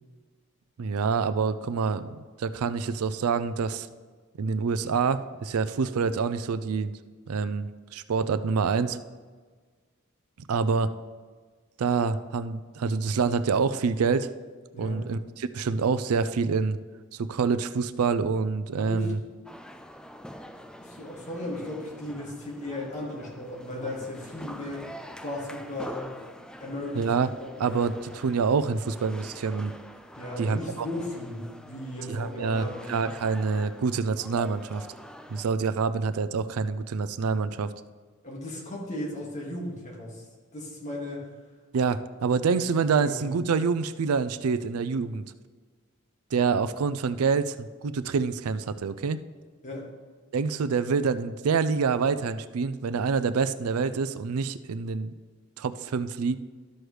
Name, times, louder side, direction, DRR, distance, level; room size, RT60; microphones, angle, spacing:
voice 1, 0.8-3.9 4.4-6.9 7.3-9.0 10.4-10.9 11.8-14.3 14.8-16.8 17.1-19.2 27.0-27.3 27.6-29.7 30.4-30.9 32.1-34.9 35.3-37.7 41.7-45.2 46.3-49.2 50.3-55.1 55.6-56.4, right 5 dB, 85° right, 13 dB, 0.4 m, -26 dB
voice 2, 14.7-15.1 18.8-19.1 20.8-24.9 25.2-26.2 26.6-27.1 27.4-27.8 30.2-32.8 38.2-40.3 40.5-41.3 42.3-42.4 43.0-43.4 49.6-49.9, left 1 dB, 35° left, -3 dB, 2.1 m, -36 dB
sound 1, 19.4-35.4, equal, 5° left, 0.3 m, -45 dB
12.5 x 6.2 x 3.3 m, 1.5 s
head